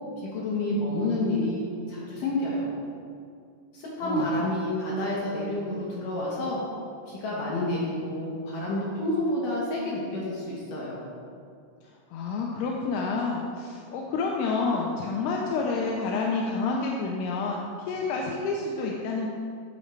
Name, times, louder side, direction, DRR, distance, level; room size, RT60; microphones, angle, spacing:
voice 1, 0.2-2.7 3.7-6.6 7.1-11.0, left 1 dB, 65° left, -5 dB, 2.2 m, -29 dB
voice 2, 4.0-4.4 11.8-19.3, left 4 dB, 85° left, -1 dB, 2.3 m, -29 dB
13.0 x 6.2 x 3.2 m, 2.3 s
omnidirectional pair, 5.3 m